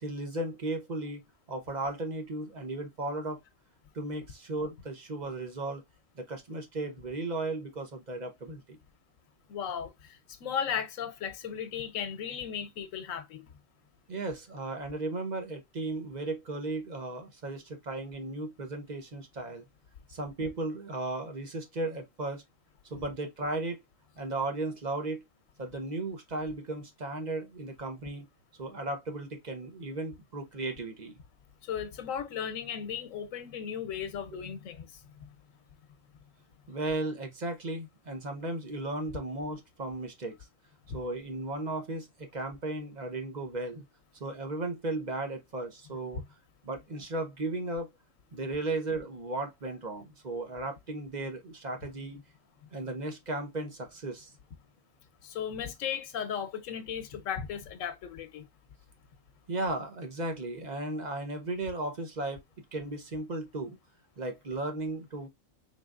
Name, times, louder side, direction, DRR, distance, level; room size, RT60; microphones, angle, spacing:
voice 1, 0.0-1.2 1.5-3.4 3.9-5.8 6.2-8.8 14.1-19.6 20.1-22.4 22.9-23.8 24.2-25.2 25.6-28.2 28.6-31.2 34.3-34.4 36.7-40.4 40.9-43.8 44.2-46.2 46.6-47.9 48.3-52.2 52.7-54.3 59.5-62.4 62.7-63.8 64.2-65.3, right 2 dB, 40° right, 0.9 m, -35 dB
voice 2, 9.5-13.4 31.6-35.3 55.2-58.5, left 8 dB, 90° left, 1.1 m, -36 dB
3.9 x 3.4 x 2.4 m
omnidirectional pair, 1.3 m